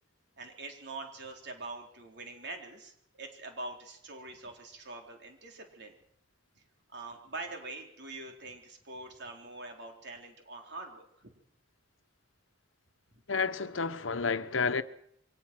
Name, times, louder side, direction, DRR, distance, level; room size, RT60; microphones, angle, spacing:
voice 1, 0.4-6.0 6.9-11.3, right 2 dB, 60° right, 3.9 m, -44 dB
voice 2, 13.3-14.8, left 5 dB, 80° left, 1.1 m, -30 dB
23.5 x 19.0 x 6.2 m
head